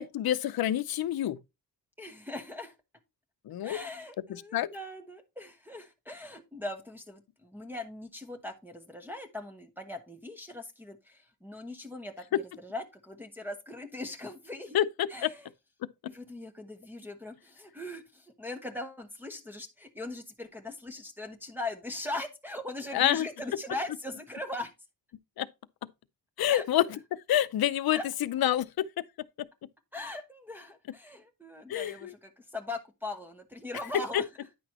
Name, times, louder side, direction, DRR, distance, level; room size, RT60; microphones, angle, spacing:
voice 1, 0.0-1.4 3.5-3.8 4.3-4.7 14.7-15.3 15.8-15.9 22.9-23.3 25.4-25.5 26.4-27.0 27.3-29.0 29.4-29.5 31.7-32.1 34.1-34.2, left 12 dB, 90° left, 0.6 m, -28 dB
voice 2, 2.0-2.8 3.6-14.8 15.1-15.5 16.1-24.7 26.5-26.6 27.9-28.0 29.9-34.3, left 2 dB, 5° right, 0.9 m, -40 dB
9.8 x 6.0 x 2.9 m
wide cardioid pair, 165°, 35 cm